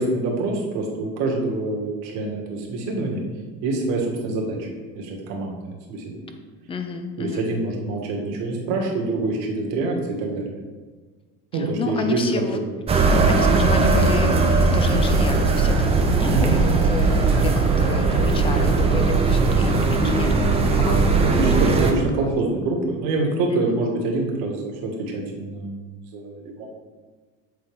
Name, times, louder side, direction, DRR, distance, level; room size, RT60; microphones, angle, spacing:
voice 1, 0.0-3.2 3.6-4.7 5.0-6.3 7.2-10.5 11.5-12.3 12.5-12.6 13.0-13.2 16.3-16.6 21.1-26.7, right 2 dB, 65° right, -1 dB, 1.6 m, -26 dB
voice 2, 6.7-7.5 11.5-12.6 13.3-22.3 23.5-23.8, left 4 dB, 20° left, 6 dB, 0.5 m, -31 dB
sound 1, 12.9-21.9, right 3 dB, 20° right, 0.7 m, -19 dB
7.9 x 4.0 x 3.4 m, 1.4 s
cardioid pair, 140°, 30 cm